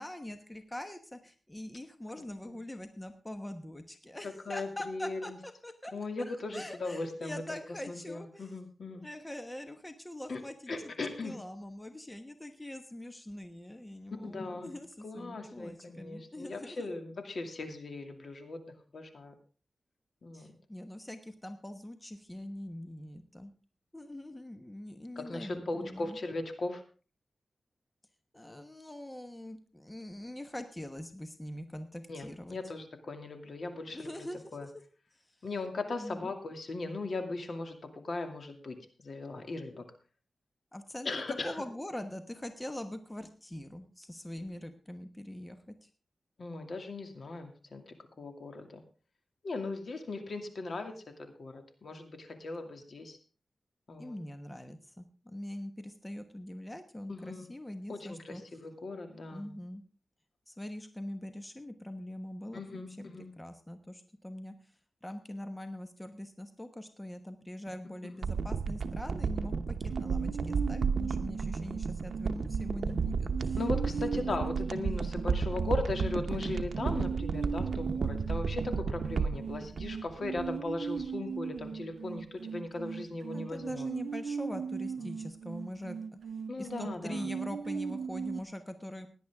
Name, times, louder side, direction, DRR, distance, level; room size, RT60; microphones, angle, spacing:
voice 1, 0.0-5.9 6.3-8.6 8.9-10.9 11.2-16.9 20.3-23.5 23.9-26.2 28.3-32.6 33.9-34.7 35.3-35.4 36.0-36.3 40.7-45.9 54.0-58.4 59.3-59.8 60.5-63.0 63.4-64.5 65.0-73.6 73.8-74.0 75.5-75.6 83.3-86.2 86.6-89.1, left 1 dB, 15° left, 7 dB, 1.2 m, -43 dB
voice 2, 2.2-2.6 4.2-5.4 5.9-7.4 7.9-9.0 10.3-10.4 10.7-11.4 14.2-14.8 15.0-18.6 18.9-19.3 20.2-20.5 25.2-26.8 32.1-34.1 34.5-34.7 35.4-39.8 41.0-41.5 46.4-48.8 49.4-53.2 53.9-54.2 57.1-57.5 57.9-59.5 62.5-63.3 68.0-68.2 73.6-83.9 86.5-87.3, left 3 dB, 65° left, 5 dB, 2.4 m, -38 dB
sound 1, 68.2-80.7 81.0-81.1, right 5 dB, 70° right, 0.9 m, -33 dB
sound 2, 69.9-88.4, right 6 dB, 90° right, 0.5 m, -39 dB
17.5 x 10.5 x 3.6 m, 0.36 s
wide cardioid pair, 85°, 0 cm